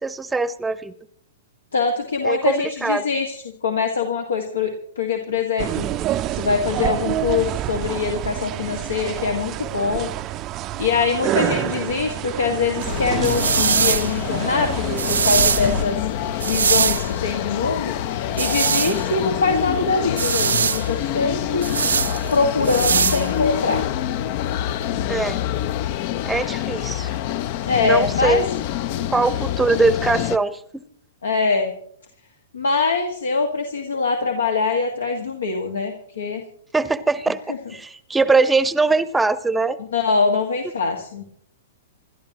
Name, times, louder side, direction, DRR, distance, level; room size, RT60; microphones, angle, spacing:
voice 1, 0.0-0.9 2.2-3.0 25.1-25.4 26.2-27.2 27.8-28.5 29.1-30.8 36.7-39.8, right 3 dB, 10° right, 16 dB, 0.9 m, -21 dB
voice 2, 1.7-5.9 6.3-10.1 10.8-16.1 16.4-17.9 18.4-21.7 22.3-23.8 27.6-28.4 31.2-31.7 32.5-36.4 39.9-41.2, left 4 dB, 75° left, 4 dB, 1.9 m, -23 dB
sound 1, 5.6-15.8, right 13 dB, 30° right, 0.6 m, -28 dB
sound 2, 12.8-30.4, left 11 dB, 45° left, 0.7 m, -26 dB
sound 3, 12.8-23.8, right 6 dB, 70° right, 0.6 m, -23 dB
28.0 x 12.5 x 3.0 m, 0.64 s
figure-of-eight pair, 110°, 0 cm